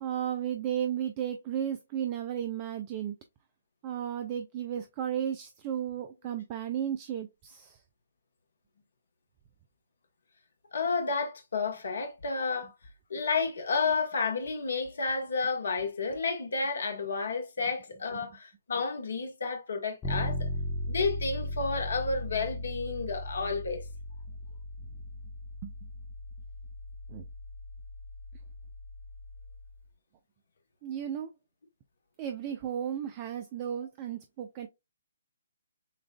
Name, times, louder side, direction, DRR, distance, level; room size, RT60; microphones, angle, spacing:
voice 1, 0.0-3.1 3.8-7.8 25.6-25.7 27.1-27.2 30.8-31.3 32.2-34.7, right 9 dB, 30° right, 0.4 m, -34 dB
voice 2, 10.7-12.7 13.1-20.5 20.9-23.8, left 4 dB, 60° left, 1.2 m, -31 dB
Bass guitar, 20.0-29.8, equal, 15° left, 0.8 m, -38 dB
6.4 x 2.4 x 2.2 m
figure-of-eight pair, 130°, 0 cm